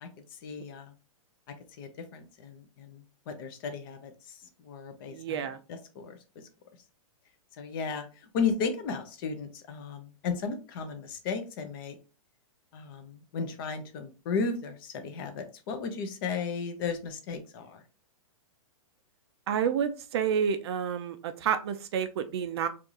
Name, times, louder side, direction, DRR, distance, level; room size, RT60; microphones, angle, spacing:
voice 1, 0.0-0.9 1.8-5.4 5.9-6.2 7.6-11.9 12.7-17.8, left 5 dB, 40° left, 7 dB, 0.8 m, -35 dB
voice 2, 5.1-5.6 19.5-22.7, right 7 dB, 45° right, 9 dB, 0.5 m, -29 dB
4.5 x 2.5 x 2.9 m, 0.33 s
hypercardioid pair, 155°, 18 cm